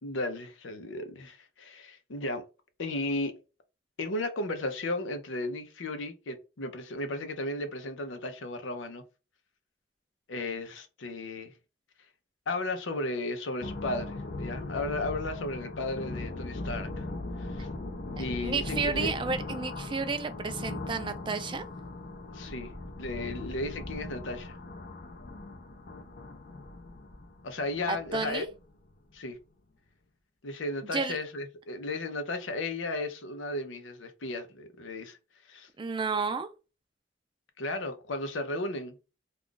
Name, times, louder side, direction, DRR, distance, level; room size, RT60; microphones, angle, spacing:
voice 1, 0.0-2.4 2.8-3.4 4.0-9.0 10.3-11.5 12.5-17.1 17.4-17.7 18.2-19.1 22.3-24.6 27.4-28.5 29.1-29.4 30.4-35.2 35.5-35.7 37.6-39.0, left 2 dB, 90° left, 0.7 m, -35 dB
sound 1, 13.6-28.9, left 2 dB, 50° left, 0.5 m, -39 dB
voice 2, 18.2-21.6 27.9-28.5 30.9-31.2 35.8-36.5, right 4 dB, 25° right, 0.4 m, -32 dB
2.4 x 2.4 x 3.7 m
head